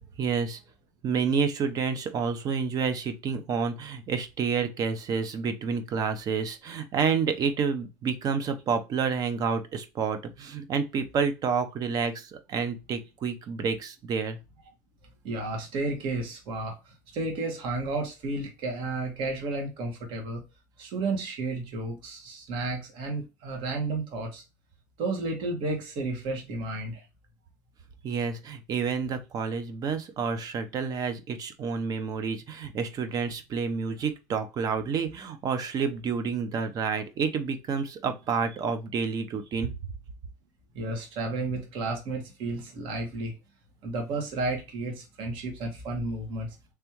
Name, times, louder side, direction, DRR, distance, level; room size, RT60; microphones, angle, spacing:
voice 1, 0.2-0.6 1.0-14.4 28.0-39.7, right 5 dB, 40° right, 0.8 m, -29 dB
voice 2, 15.2-20.4 20.8-24.4 25.0-27.0 38.4-38.6 40.7-43.3 43.8-46.5, right 2 dB, 55° right, 1.6 m, -32 dB
3.5 x 3.3 x 2.9 m
supercardioid pair, 120°, 10 cm